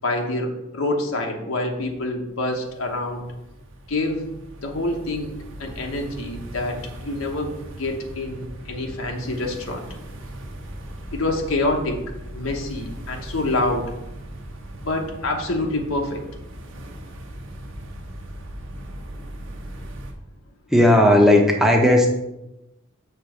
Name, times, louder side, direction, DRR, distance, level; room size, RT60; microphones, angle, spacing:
voice 1, 0.0-3.2 3.9-4.3 4.6-5.3 5.6-9.9 11.1-12.0 12.3-13.9 14.8-16.2, left 2 dB, 80° left, 2 dB, 1.1 m, -26 dB
sound 1, 2.1-20.1, right 1 dB, 65° right, 1.0 m, -38 dB
voice 2, 20.7-22.1, left 1 dB, ahead, 1 dB, 0.9 m, -15 dB
6.9 x 4.0 x 6.4 m, 0.91 s
head